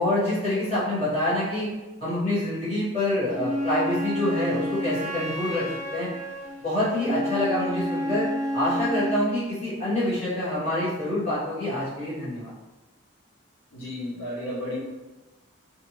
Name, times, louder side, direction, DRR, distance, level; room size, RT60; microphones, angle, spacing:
voice 1, 0.0-1.7 2.0-5.6 5.9-6.1 6.6-8.3 8.5-12.5, left 1 dB, 30° left, -12 dB, 1.5 m, -26 dB
Wind instrument woodwind instrument, 3.3-9.3, equal, 35° right, 0.4 m, -30 dB
voice 2, 13.7-14.8, left 1 dB, 75° left, -5 dB, 1.0 m, -33 dB
2.6 x 2.3 x 3.1 m, 1.1 s
head